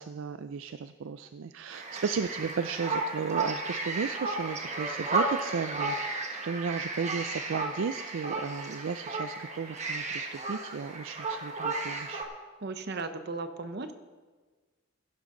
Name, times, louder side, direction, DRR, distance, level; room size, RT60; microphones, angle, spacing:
voice 1, 0.0-12.3, right 5 dB, 75° right, 10 dB, 0.4 m, -34 dB
sound 1, 1.7-12.2, right 3 dB, 35° right, 1.4 m, -33 dB
voice 2, 12.6-13.9, right 3 dB, 55° right, 9 dB, 0.9 m, -36 dB
15.5 x 11.0 x 3.8 m, 1.4 s
head